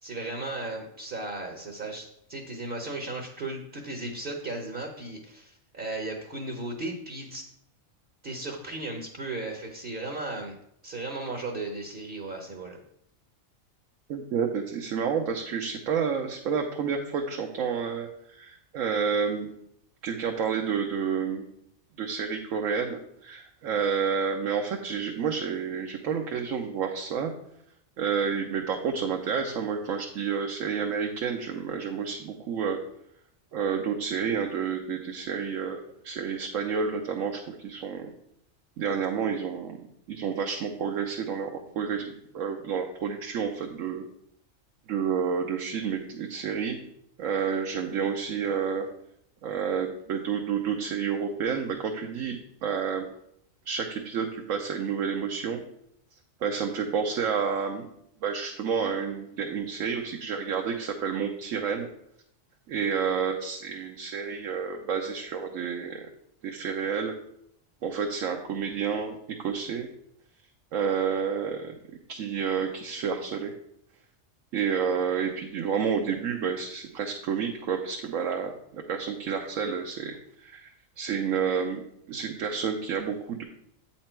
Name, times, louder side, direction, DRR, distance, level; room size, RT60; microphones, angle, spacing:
voice 1, 0.0-7.4 8.2-10.5 10.8-12.8, right 2 dB, 45° right, 2 dB, 0.9 m, -36 dB
voice 2, 14.1-19.5 20.0-21.4 22.0-27.3 28.0-32.8 33.5-38.1 38.8-42.0 42.3-44.0 44.9-46.8 47.2-48.9 49.4-53.1 53.7-55.6 56.4-57.9 58.2-61.9 62.7-66.0 66.4-67.1 67.8-69.9 70.7-71.7 72.1-73.5 74.5-80.7 81.0-81.8 82.1-83.4, right 6 dB, 80° right, 2 dB, 1.1 m, -30 dB
8.3 x 4.4 x 4.4 m, 0.74 s
omnidirectional pair, 1.4 m